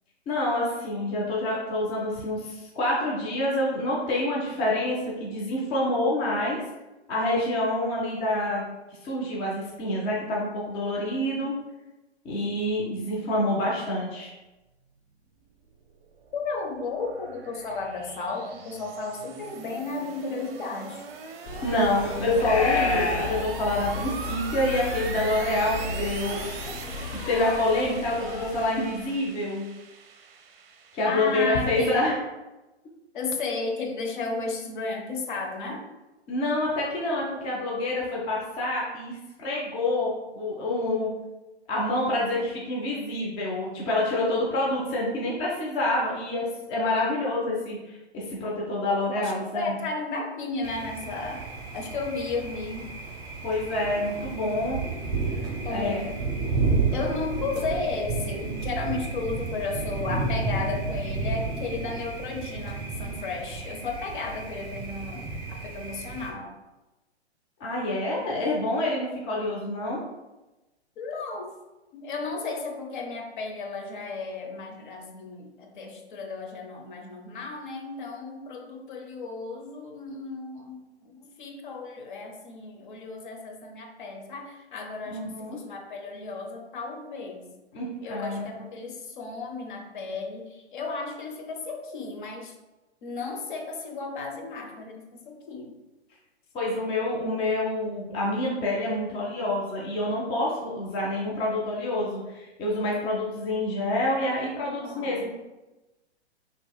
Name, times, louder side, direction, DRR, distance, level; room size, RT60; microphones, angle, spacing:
voice 1, 0.3-6.6 7.1-8.7 9.0-11.5 12.2-14.3 21.6-26.7 27.3-29.6 30.9-32.2 36.3-41.1 41.7-49.8 53.4-54.8 55.7-56.0 67.6-70.0 85.1-85.6 87.7-88.5 96.5-105.3, left 1 dB, 15° left, -5 dB, 0.5 m, -27 dB
sound 1, 15.8-31.8, right 5 dB, 60° right, 0.6 m, -41 dB
voice 2, 16.3-21.0 31.0-32.0 33.1-35.8 49.2-51.5 51.7-52.9 55.6-56.1 56.9-66.5 71.0-71.5 71.9-87.5 88.0-92.5 93.0-95.7 104.8-105.2, left 3 dB, 45° left, 2 dB, 0.8 m, -34 dB
sound 2, 21.5-29.1, left 3 dB, 80° left, 0.8 m, -32 dB
Thunder, 50.6-66.3, right 3 dB, 10° right, 1.2 m, -31 dB
6.1 x 2.9 x 2.3 m, 1.1 s
figure-of-eight pair, 120°, 34 cm